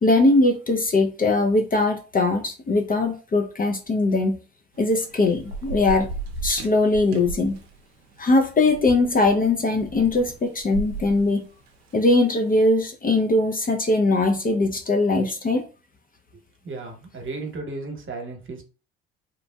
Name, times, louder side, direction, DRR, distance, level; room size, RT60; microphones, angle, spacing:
voice 1, 0.0-4.4 4.8-6.1 6.4-7.6 8.2-11.4 11.9-15.6, left 2 dB, 30° left, 4 dB, 0.5 m, -21 dB
Thunder / Rain, 4.7-12.4, right 3 dB, 85° right, 0.5 m, -36 dB
voice 2, 16.6-18.6, right 3 dB, 40° right, 2 dB, 1.1 m, -34 dB
3.1 x 2.5 x 2.2 m, 0.35 s
hypercardioid pair, 50°, 31 cm